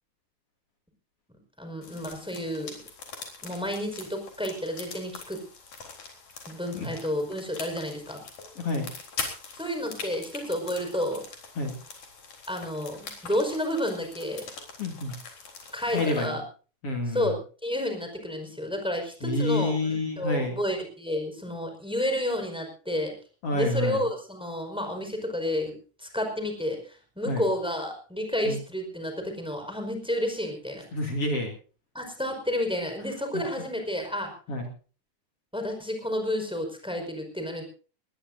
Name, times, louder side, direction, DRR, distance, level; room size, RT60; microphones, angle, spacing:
voice 1, 1.6-2.7 3.4-5.4 6.5-8.2 9.5-11.2 12.5-14.4 15.7-16.4 17.1-23.1 23.5-30.8 31.9-34.3 35.5-37.6, left 1 dB, ahead, 5 dB, 4.9 m, -31 dB
sound 1, 1.8-16.3, left 4 dB, 75° left, 5.4 m, -43 dB
voice 2, 8.6-8.9 11.6-11.8 14.8-15.1 15.9-16.4 16.8-17.3 19.2-20.5 23.4-24.0 27.3-27.4 28.4-28.6 30.9-31.5 34.5-34.7, left 2 dB, 50° left, 2 dB, 3.5 m, -28 dB
20.5 x 20.0 x 2.7 m, 0.38 s
omnidirectional pair, 3.5 m